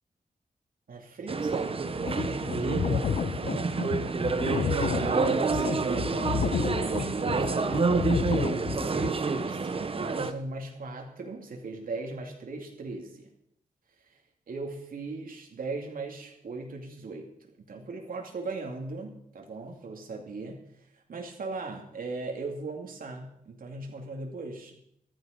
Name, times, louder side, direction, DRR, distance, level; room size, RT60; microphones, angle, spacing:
voice 1, 0.9-3.7 4.5-13.3 14.5-20.6 21.1-24.8, right 3 dB, 70° right, 1 dB, 2.6 m, -38 dB
sound 1, 1.3-10.3, right 4 dB, 40° right, 0.9 m, -28 dB
sound 2, 1.9-9.1, left 8 dB, 65° left, 0.5 m, -32 dB
14.5 x 13.5 x 5.3 m, 0.73 s
wide cardioid pair, 175°, 15 cm